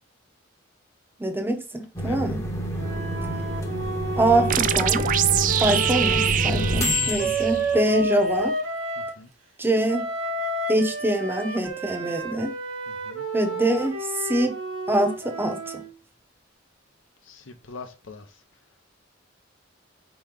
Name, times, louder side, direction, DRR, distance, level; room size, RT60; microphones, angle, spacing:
voice 1, 1.2-2.4 4.2-5.0 5.6-8.5 9.6-10.1 10.7-12.5 13.3-14.5 14.9-15.8, right 1 dB, 10° right, 0.8 m, -24 dB
sound 1, 1.9-8.4, equal, 15° left, 0.8 m, -28 dB
voice 2, 2.0-2.4 5.9-6.0 6.6-6.9 9.0-9.3 12.9-13.2 17.2-18.4, left 3 dB, 75° left, 0.7 m, -43 dB
Wind instrument woodwind instrument, 2.8-9.2 9.9-15.9, right 2 dB, 90° right, 1.1 m, -30 dB
sound 2, 4.5-8.0, right 10 dB, 45° right, 0.3 m, -25 dB
4.6 x 3.0 x 3.6 m
head